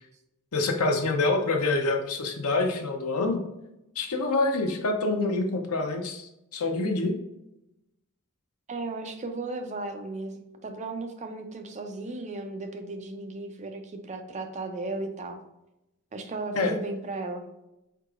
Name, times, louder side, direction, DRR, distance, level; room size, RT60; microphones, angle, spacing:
voice 1, 0.5-3.4 4.0-7.2 16.5-16.7, left 3 dB, 75° left, 4 dB, 0.7 m, -26 dB
voice 2, 8.7-15.4 16.1-17.5, right 2 dB, 30° right, 5 dB, 0.5 m, -35 dB
4.6 x 3.9 x 2.4 m, 0.90 s
head